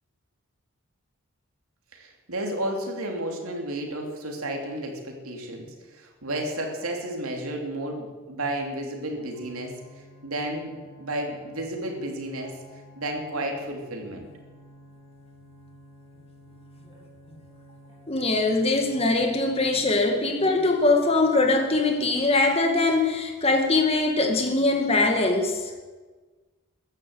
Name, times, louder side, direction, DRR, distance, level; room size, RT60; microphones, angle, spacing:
voice 1, 1.9-5.6 5.9-9.7 10.2-10.7 11.0-12.5 12.9-14.3, right 1 dB, 85° right, 2 dB, 3.0 m, -32 dB
sound 1, 9.1-19.8, equal, 20° right, 4.2 m, -51 dB
voice 2, 18.1-25.6, left 2 dB, 25° left, 3 dB, 2.0 m, -22 dB
14.5 x 11.0 x 8.0 m, 1.3 s
head